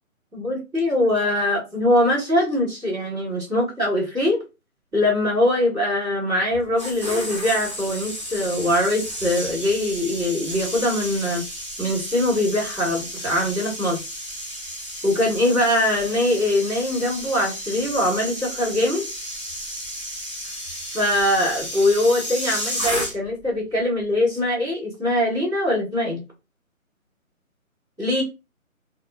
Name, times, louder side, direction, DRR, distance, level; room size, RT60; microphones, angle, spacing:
voice 1, 0.3-4.4 4.9-11.4 11.8-14.0 15.0-19.1 20.9-26.2 28.0-28.2, left 1 dB, 5° right, -12 dB, 1.0 m, -22 dB
sound 1, 6.5-23.5 23.7-24.0, equal, 20° left, 0.5 m, -33 dB
2.4 x 2.0 x 2.5 m, 0.26 s
figure-of-eight pair, 155°, 42 cm